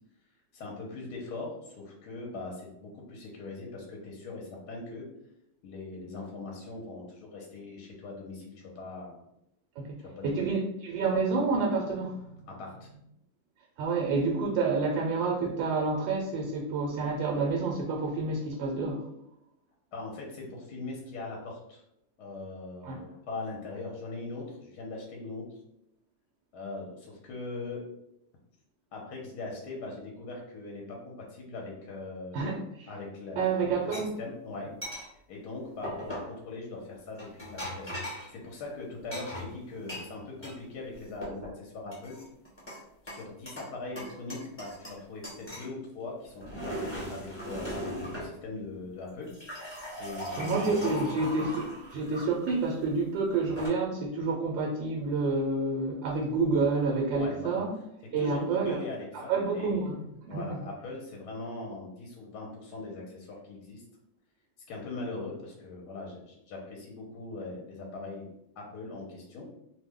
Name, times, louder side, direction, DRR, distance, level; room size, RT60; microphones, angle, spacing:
voice 1, 0.5-5.1 5.6-9.2 10.0-10.3 12.5-12.9 19.9-21.8 22.2-25.6 26.5-27.9 28.9-32.5 32.9-33.7 33.9-34.7 35.3-42.2 43.0-49.3 50.0-51.4 57.2-57.6 58.2-59.9 60.3-63.8 64.7-68.3 68.6-69.5, left 3 dB, 65° left, -1 dB, 1.2 m, -41 dB
voice 2, 10.2-12.5 13.8-19.1 22.8-23.0 32.3-32.9 33.4-34.1 50.4-57.7 58.1-58.8 59.1-60.6, right 3 dB, 90° right, -1 dB, 1.3 m, -29 dB
sound 1, 33.9-34.0 34.8-35.1 35.8-36.3 37.2-38.3 39.1-40.6 40.9-41.5 41.9-42.8 43.1-43.7 44.0-45.0 45.2-45.7 46.2-48.3 49.1-52.5 53.3-53.7, equal, 10° left, 0.9 m, -39 dB
3.0 x 2.1 x 3.5 m, 0.80 s
omnidirectional pair, 1.9 m